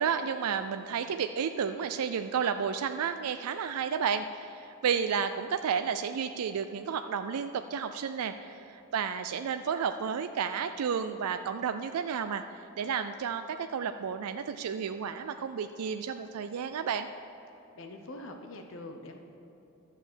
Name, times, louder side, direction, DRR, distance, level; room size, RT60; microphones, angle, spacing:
voice 1, 0.0-17.1, right 7 dB, 85° right, 8 dB, 0.4 m, -32 dB
voice 2, 17.8-19.2, left 2 dB, 60° left, 4 dB, 0.8 m, -43 dB
12.0 x 7.3 x 6.2 m, 2.9 s
head